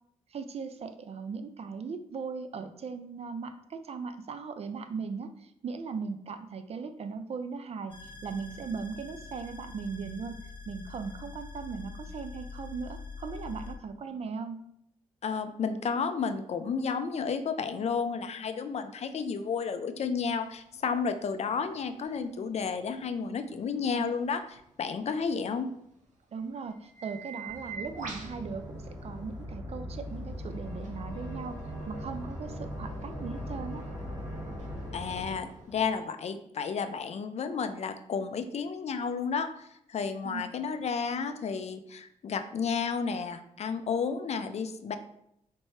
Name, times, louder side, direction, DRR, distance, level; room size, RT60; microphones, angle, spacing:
voice 1, 0.3-14.7 23.9-24.0 26.3-31.6 31.9-33.8 40.2-40.4, right 5 dB, 50° right, 9 dB, 0.4 m, -38 dB
sound 1, 7.9-13.7, left 4 dB, 40° left, 0.9 m, -44 dB
voice 2, 15.2-25.7 34.9-45.0, left 5 dB, 55° left, 10 dB, 0.4 m, -32 dB
sound 2, 20.2-29.4 29.9-35.8, right 4 dB, 70° right, 1.0 m, -49 dB
sound 3, 27.4-36.0, equal, 30° right, 1.3 m, -40 dB
4.4 x 3.1 x 2.8 m, 0.75 s
cardioid pair, 95°, 13 cm